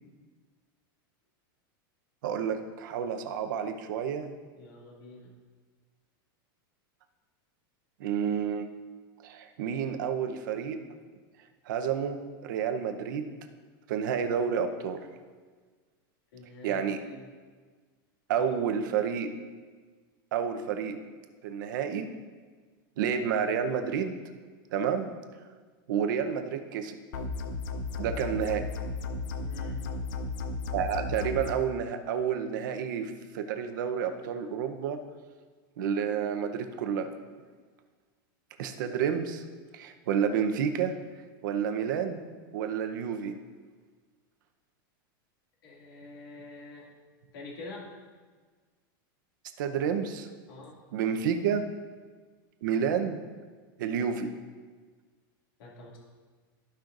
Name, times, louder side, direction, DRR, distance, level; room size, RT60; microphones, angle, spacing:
voice 1, 2.2-4.3 8.0-8.7 9.2-10.8 11.7-12.2 12.4-13.3 13.9-15.0 16.6-17.0 18.3-19.3 20.3-21.0 21.4-22.1 23.0-24.1 24.7-25.1 25.9-27.0 28.0-28.6 30.7-35.0 35.8-37.1 38.6-39.4 39.7-40.9 41.4-42.2 42.5-43.3 49.6-50.3 50.9-51.6 52.6-53.2 53.8-54.3, right 7 dB, 60° right, 6 dB, 0.8 m, -30 dB
voice 2, 4.6-5.3 16.3-17.3 18.3-18.6 29.4-29.9 45.6-46.9 47.3-47.9 50.5-50.8 55.6-56.0, left 2 dB, 75° left, -4 dB, 2.4 m, -46 dB
sound 1, 27.1-31.5, left 3 dB, 55° left, 0.7 m, -34 dB
14.5 x 5.7 x 2.6 m, 1.5 s
supercardioid pair, 180°, 12 cm